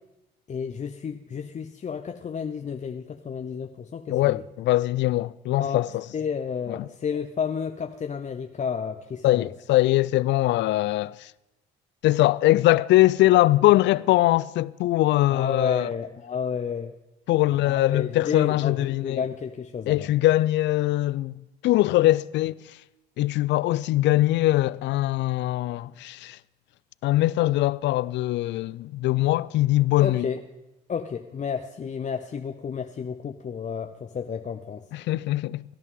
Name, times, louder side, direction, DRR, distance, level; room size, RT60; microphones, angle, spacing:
voice 1, 0.5-4.4 5.6-5.8 6.1-9.5 15.3-16.9 17.6-20.1 30.0-30.4 30.9-34.9, left 6 dB, 40° left, 0.7 m, -31 dB
voice 2, 4.1-6.0 6.7-6.9 9.2-11.3 12.0-15.9 17.3-19.2 19.9-22.8 23.2-26.4 27.0-30.3 34.9-35.6, left 16 dB, 65° left, 0.4 m, -22 dB
17.5 x 11.0 x 3.8 m
supercardioid pair, 65°, 20 cm